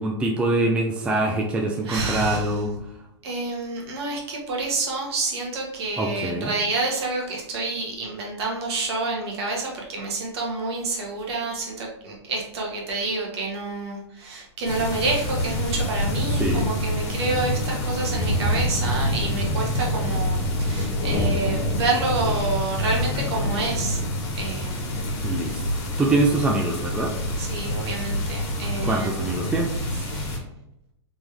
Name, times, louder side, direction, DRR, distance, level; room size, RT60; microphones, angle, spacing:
voice 1, 0.0-2.7 6.0-6.5 16.3-16.7 25.2-27.1 28.8-30.1, right 2 dB, 5° right, 0 dB, 0.4 m, -24 dB
voice 2, 1.8-2.5 3.2-24.0 24.4-25.0 27.4-29.2 30.0-30.4, right 3 dB, 55° right, -2 dB, 1.4 m, -28 dB
sound 1, 14.6-30.4, left 1 dB, 50° left, 1.3 m, -26 dB
3.5 x 3.1 x 3.3 m, 0.80 s
hypercardioid pair, 125°, 16 cm